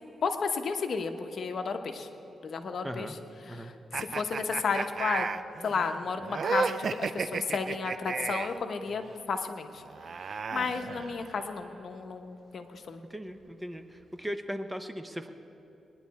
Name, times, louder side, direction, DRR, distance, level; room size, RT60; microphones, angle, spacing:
voice 1, 0.2-2.1 2.4-3.2 3.5-5.3 5.6-9.8 10.2-13.0, left 5 dB, 60° left, 7 dB, 0.9 m, -33 dB
voice 2, 2.8-3.2 3.5-3.7 13.1-15.3, equal, 10° right, 8 dB, 0.7 m, -38 dB
sound 1, 3.9-8.6 9.8-11.5, right 5 dB, 55° right, 0.4 m, -34 dB
21.5 x 10.5 x 4.2 m, 3.0 s
cardioid pair, 95°, 0 cm